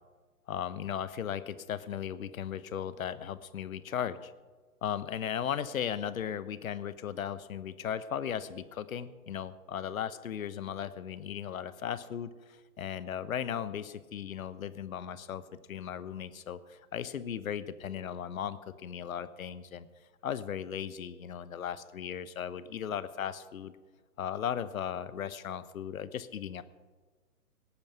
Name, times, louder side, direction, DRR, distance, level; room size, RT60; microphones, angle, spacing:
voice 1, 0.5-4.3 4.8-15.4 15.7-19.9 20.2-23.7 24.2-26.6, left 9 dB, 65° left, 15 dB, 1.0 m, -37 dB
18.5 x 8.8 x 5.8 m, 1.3 s
hypercardioid pair, 135°, 46 cm